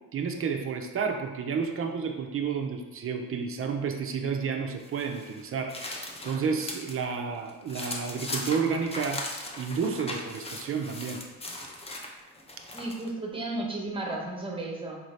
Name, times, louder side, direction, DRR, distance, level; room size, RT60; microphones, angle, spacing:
voice 1, 0.1-9.2 9.6-11.2, right 6 dB, 40° right, 4 dB, 0.4 m, -31 dB
sound 1, 4.8-7.0 7.3-13.1, left 2 dB, 15° left, 0.5 m, -39 dB
voice 2, 12.7-15.0, right 2 dB, 15° right, -1 dB, 0.8 m, -33 dB
4.3 x 2.7 x 3.1 m, 1.1 s
cardioid pair, 105°, 35 cm